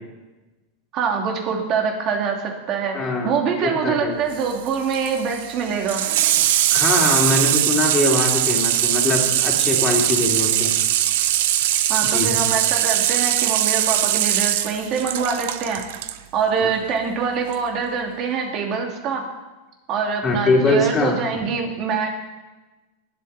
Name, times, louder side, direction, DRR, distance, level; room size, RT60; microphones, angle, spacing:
voice 1, 0.9-6.0 11.9-15.8 16.3-19.2 19.9-22.1, right 6 dB, 45° right, 1 dB, 3.1 m, -24 dB
voice 2, 2.9-3.3 3.8-4.1 6.7-10.7 12.0-12.3 16.6-16.7 20.2-21.1, left 2 dB, 25° left, -3 dB, 3.4 m, -22 dB
Water tap faucet / Sink (filling or washing), 4.3-16.2 17.5-17.6, right 13 dB, 70° right, 0.7 m, -21 dB
20.0 x 8.1 x 4.5 m, 1.1 s
hypercardioid pair, 115°, 0 cm